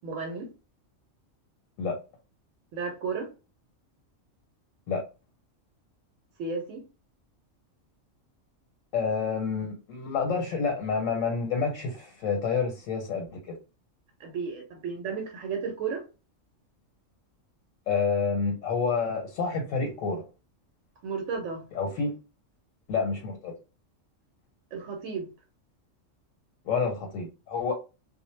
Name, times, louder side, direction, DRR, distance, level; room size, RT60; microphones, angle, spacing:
voice 1, 0.0-0.5 2.7-3.3 6.4-6.8 14.2-16.0 21.0-21.6 24.7-25.3, right 5 dB, 75° right, 0.9 m, -33 dB
voice 2, 8.9-13.5 17.9-20.2 21.7-22.1 22.9-23.5 26.6-27.7, left 5 dB, 85° left, 1.0 m, -28 dB
2.2 x 2.0 x 3.0 m
omnidirectional pair, 1.3 m